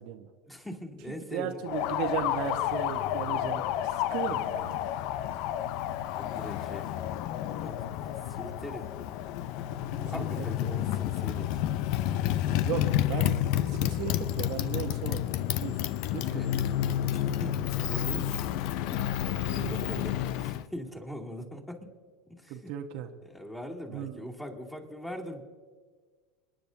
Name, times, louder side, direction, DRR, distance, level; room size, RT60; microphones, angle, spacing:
voice 1, 0.5-1.6 6.2-6.9 7.6-7.9 8.3-8.9 9.9-11.5 16.2-16.5 17.0-17.6 17.9-18.5 18.9-19.1 19.5-21.9 22.3-22.7 23.2-25.4, left 1 dB, 10° left, -1 dB, 2.7 m, -41 dB
voice 2, 1.3-4.8 10.2-10.8 12.6-15.2 15.6-15.8 16.1-16.4 19.5-20.1 22.5-23.1 23.9-24.3, right 10 dB, 65° right, 5 dB, 1.0 m, -36 dB
Motorcycle, 1.7-20.6, left 12 dB, 65° left, 0.5 m, -30 dB
28.0 x 10.0 x 2.7 m, 1.5 s
hypercardioid pair, 90°, 0 cm